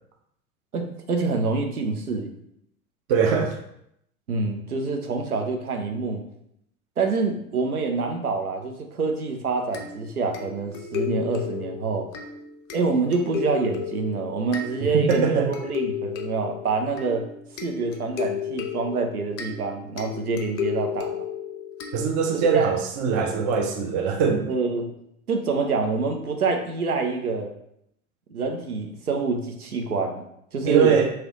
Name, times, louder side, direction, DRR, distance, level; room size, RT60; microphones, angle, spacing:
voice 1, 0.7-2.3 4.3-6.2 7.0-12.1 12.7-17.3 17.6-21.1 22.5-22.7 24.5-24.9 25.3-27.5 28.3-30.3 30.5-30.9, right 4 dB, 85° right, 4 dB, 0.7 m, -26 dB
voice 2, 3.1-3.6 14.8-15.5 21.9-24.5 30.7-31.1, right 6 dB, 20° right, 3 dB, 0.3 m, -22 dB
sound 1, 9.7-22.5, left 8 dB, 40° left, 0.6 m, -34 dB
3.2 x 3.0 x 3.6 m, 0.75 s
figure-of-eight pair, 85°, 43 cm